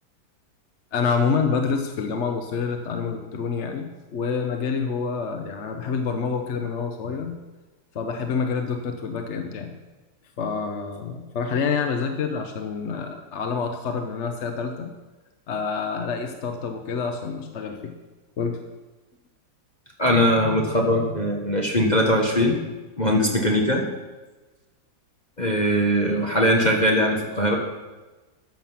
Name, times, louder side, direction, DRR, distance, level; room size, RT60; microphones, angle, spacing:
voice 1, 0.9-7.4 7.9-9.8 10.4-14.9 15.5-17.9 18.4-18.6, left 5 dB, 50° left, 5 dB, 0.8 m, -27 dB
voice 2, 20.0-22.6 23.0-23.9 25.4-27.6, equal, 25° left, -1 dB, 1.1 m, -21 dB
13.5 x 7.4 x 5.8 m, 1.2 s
omnidirectional pair, 2.1 m